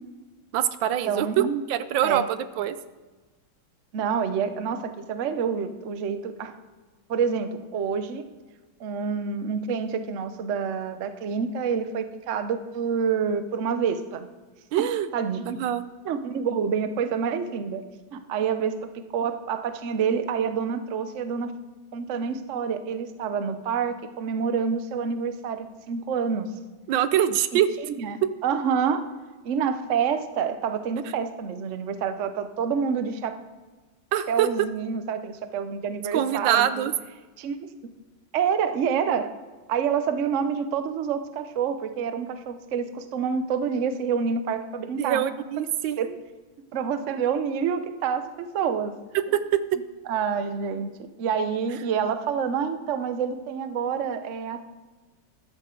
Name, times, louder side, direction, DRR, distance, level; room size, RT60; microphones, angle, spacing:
voice 1, 0.5-2.8 14.7-15.1 15.6-15.8 26.9-27.7 34.1-34.5 36.1-36.9 45.0-46.2 49.3-49.6, right 11 dB, 75° right, 13 dB, 1.3 m, -24 dB
voice 2, 1.0-1.6 2.0-2.3 3.9-6.6 7.1-8.3 8.8-14.3 14.8-14.9 15.1-15.4 16.0-17.8 18.1-21.5 21.9-26.5 27.5-27.6 28.0-29.1 29.4-33.4 34.3-36.9 37.4-37.9 38.3-39.3 39.7-45.2 46.0-46.1 46.7-48.9 50.1-50.9 51.2-54.7, right 6 dB, 55° right, 10 dB, 0.8 m, -27 dB
14.0 x 12.0 x 3.8 m, 1.3 s
omnidirectional pair, 2.2 m